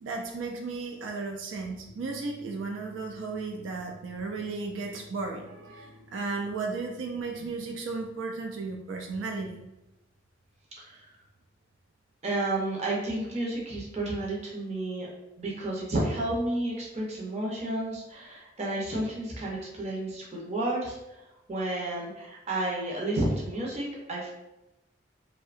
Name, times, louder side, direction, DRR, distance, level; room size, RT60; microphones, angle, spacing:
voice 1, 0.0-9.7, right 3 dB, 80° right, 2 dB, 0.3 m, -35 dB
sound 1, 1.8-8.0, equal, 35° left, 0.4 m, -55 dB
voice 2, 10.8-11.1 12.2-15.1 15.4-24.3, right 1 dB, 35° right, -3 dB, 0.5 m, -31 dB
2.7 x 2.1 x 2.4 m, 0.95 s
head